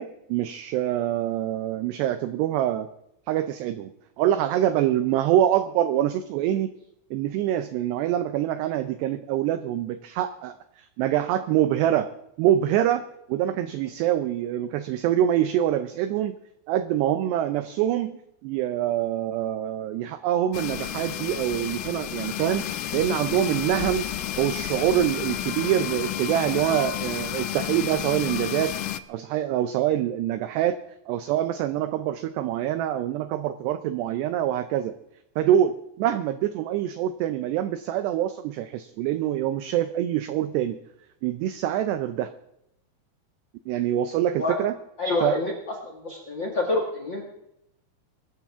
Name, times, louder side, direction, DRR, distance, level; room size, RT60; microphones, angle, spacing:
voice 1, 0.0-2.9 3.3-3.9 4.2-6.7 7.1-12.1 12.4-16.4 16.7-24.1 24.4-28.8 29.1-30.8 31.1-34.9 35.4-40.8 41.2-42.3 43.7-44.8 45.2-45.4, right 11 dB, 90° right, 11 dB, 2.4 m, -25 dB
sound 1, 20.5-29.0, left 10 dB, 90° left, 3.3 m, -31 dB
voice 2, 45.0-45.5 45.8-47.2, left 2 dB, 60° left, 1 dB, 1.2 m, -27 dB
22.5 x 13.0 x 3.6 m, 0.80 s
omnidirectional pair, 5.7 m